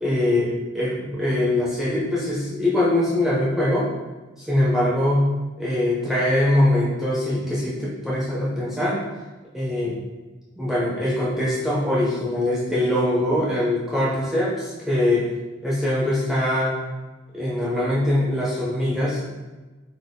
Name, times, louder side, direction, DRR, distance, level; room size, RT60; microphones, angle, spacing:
voice 1, 0.0-3.9 4.4-5.3 5.6-9.0 9.5-10.0 10.6-15.3 15.6-16.8 17.3-19.3, left 1 dB, ahead, -7 dB, 0.5 m, -22 dB
2.6 x 2.5 x 3.3 m, 1.2 s
head